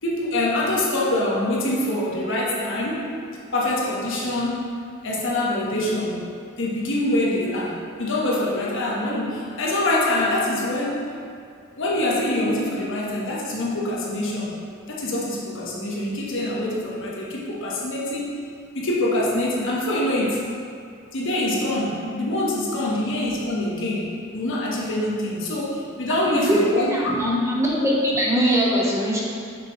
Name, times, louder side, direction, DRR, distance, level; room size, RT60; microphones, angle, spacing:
voice 1, 0.0-3.1 3.5-4.7 5.0-6.2 6.6-11.1 11.8-14.5 14.9-18.4 18.7-20.5 21.1-24.1 24.3-26.9 27.2-27.6, left 1 dB, 60° left, -4 dB, 1.3 m, -24 dB
voice 2, 26.3-29.2, equal, 15° right, -4 dB, 1.0 m, -22 dB
6.9 x 6.8 x 3.1 m, 2.3 s
head